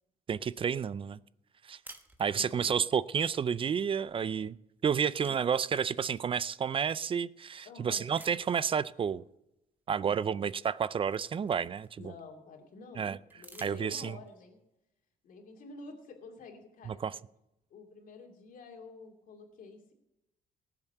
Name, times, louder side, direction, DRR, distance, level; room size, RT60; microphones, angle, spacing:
voice 1, 0.3-1.2 1.6-1.8 2.2-4.6 4.8-9.2 9.9-12.0 13.0-13.2 13.6-14.2 16.9-17.1, right 7 dB, 35° right, 18 dB, 0.4 m, -30 dB
sound 1, 1.8-2.8 4.2-4.5 4.8-6.4 7.0-7.1 8.1-8.8 10.2-10.3 10.7-12.2 13.3-14.4, right 2 dB, 10° right, 1.2 m, -55 dB
voice 2, 2.3-2.8 5.3-5.4 7.6-8.1 12.0-14.6 15.2-17.2 17.7-19.9, left 3 dB, 60° left, 1 dB, 2.7 m, -50 dB
18.5 x 7.3 x 6.7 m, 0.88 s
cardioid pair, 125°, 16 cm